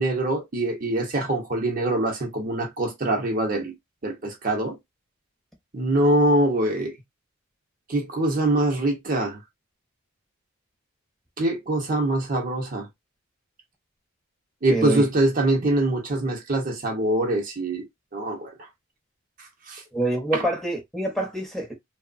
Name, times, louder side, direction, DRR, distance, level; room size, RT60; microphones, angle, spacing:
voice 1, 0.0-3.7 4.0-4.8 5.7-6.9 7.9-9.4 11.4-12.9 14.6-17.8 18.1-18.5 19.7-19.8, right 1 dB, 40° right, 0.6 m, -24 dB
voice 2, 14.7-15.0 19.9-21.7, right 1 dB, ahead, 0.7 m, -26 dB
3.1 x 2.0 x 2.4 m
head